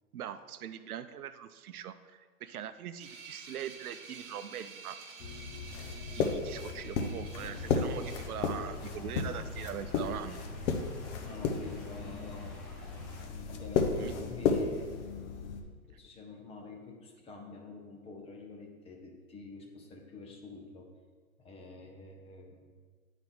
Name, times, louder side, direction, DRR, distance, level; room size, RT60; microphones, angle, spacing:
voice 1, 0.1-5.0 6.1-10.4 14.0-14.1, right 9 dB, 80° right, 12 dB, 0.6 m, -42 dB
sound 1, 3.0-8.2, right 4 dB, 40° right, 1.8 m, -50 dB
sound 2, 5.2-15.6, left 5 dB, 55° left, 1.0 m, -34 dB
sound 3, 7.5-13.2, left 1 dB, 35° left, 2.0 m, -53 dB
voice 2, 11.2-12.6 13.5-14.9 15.9-20.9 21.4-22.7, left 3 dB, 15° left, 2 dB, 0.6 m, -47 dB
9.3 x 4.1 x 4.8 m, 1.5 s
hypercardioid pair, 130°, 43 cm